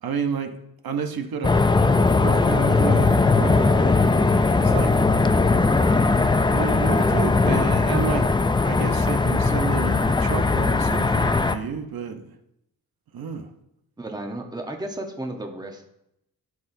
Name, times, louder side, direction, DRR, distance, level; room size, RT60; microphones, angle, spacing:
voice 1, 0.0-0.6 0.8-1.5 1.9-4.1 4.6-5.0 6.5-8.3 8.6-12.3 13.1-13.5, right 6 dB, 80° right, 6 dB, 0.9 m, -31 dB
sound 1, 1.4-11.5, left 3 dB, 15° left, 0.3 m, -19 dB
voice 2, 14.0-15.9, right 1 dB, 10° right, 3 dB, 0.9 m, -33 dB
13.5 x 5.9 x 2.7 m, 0.82 s
wide cardioid pair, 120°, 35 cm